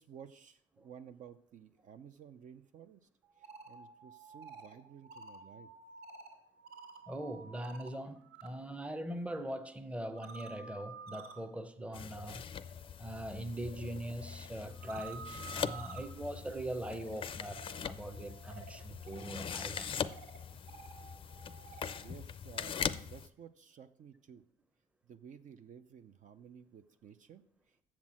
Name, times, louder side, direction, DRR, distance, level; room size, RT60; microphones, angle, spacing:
voice 1, 0.0-3.1 3.4-5.7 22.0-24.4 25.0-27.8, right 8 dB, 50° right, 0.5 m, -54 dB
sound 1, 3.2-8.5 8.8-22.1, right 5 dB, 80° right, 2.1 m, -53 dB
voice 2, 7.1-12.5 13.0-20.0, right 1 dB, 5° right, 0.7 m, -42 dB
sound 2, 11.9-23.3, left 7 dB, 30° left, 0.5 m, -41 dB
7.3 x 6.0 x 7.5 m
cardioid pair, 110°, 17 cm